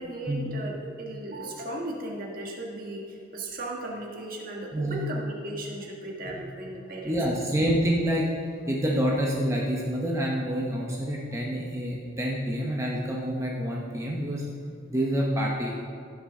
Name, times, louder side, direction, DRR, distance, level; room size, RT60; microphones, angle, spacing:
voice 1, 0.0-7.4, right 1 dB, 45° right, -2 dB, 1.6 m, -36 dB
voice 2, 7.0-8.3 8.7-14.5 14.9-15.7, equal, 15° right, -3 dB, 0.8 m, -27 dB
15.5 x 6.3 x 3.7 m, 2.3 s
head